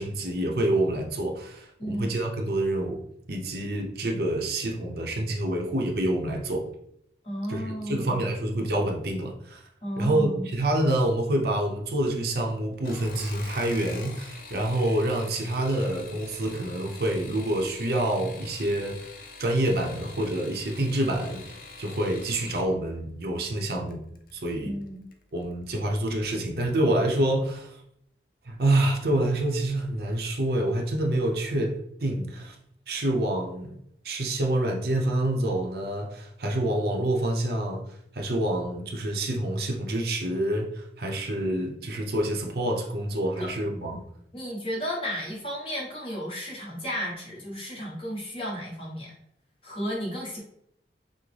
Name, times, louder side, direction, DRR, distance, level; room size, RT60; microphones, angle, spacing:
voice 1, 0.0-3.0 3.3-6.7 7.5-9.6 10.0-19.1 19.4-24.0 24.3-24.7 25.3-27.8 28.5-32.6 32.9-33.7 34.0-37.8 38.1-44.0, right 1 dB, 60° right, 2 dB, 0.7 m, -27 dB
voice 2, 1.8-2.1 7.2-8.2 9.8-10.5 24.6-25.0 43.4-43.5 43.9-44.0 44.3-49.1 49.6-50.4, equal, 30° left, -3 dB, 1.2 m, -33 dB
sound 1, 12.7-22.7 23.9-24.4 24.8-25.2 25.5-25.6, left 4 dB, 50° left, 0.5 m, -45 dB
6.0 x 2.1 x 3.3 m, 0.74 s
head